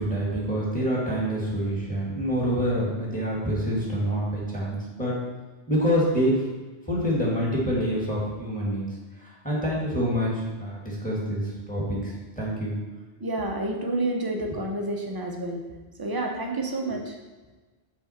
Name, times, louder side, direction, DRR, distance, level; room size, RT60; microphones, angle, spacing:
voice 1, 0.0-5.2 5.7-6.4 6.9-8.8 9.2-12.8 14.4-14.5 16.8-16.9, equal, 5° left, -5 dB, 1.6 m, -26 dB
voice 2, 13.2-15.6 16.0-17.1, right 2 dB, 25° right, 1 dB, 0.6 m, -29 dB
6.0 x 4.4 x 4.2 m, 1.3 s
omnidirectional pair, 1.2 m